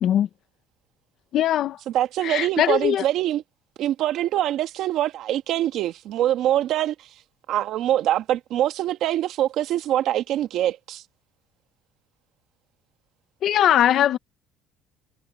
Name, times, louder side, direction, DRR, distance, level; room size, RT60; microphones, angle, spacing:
voice 1, 1.3-1.8 2.2-3.0 13.4-14.2, left 11 dB, 50° left, 1.4 m, -20 dB
voice 2, 1.9-3.4 3.8-7.1 7.5-11.0, right 12 dB, 60° right, 1.6 m, -24 dB
cardioid pair, 130°, 0 cm